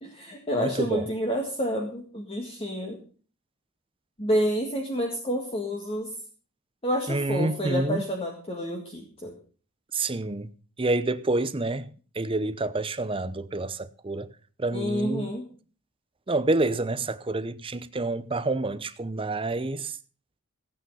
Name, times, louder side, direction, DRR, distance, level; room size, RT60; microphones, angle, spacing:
voice 1, 0.0-3.0 4.2-6.1 6.8-9.3 14.7-15.5, equal, 25° left, 1.8 m, -29 dB
voice 2, 0.6-1.1 7.1-8.0 9.9-10.5 10.8-11.9 12.1-14.3 14.6-15.3 16.3-20.0, right 2 dB, 25° right, 0.7 m, -28 dB
16.0 x 8.7 x 5.6 m
head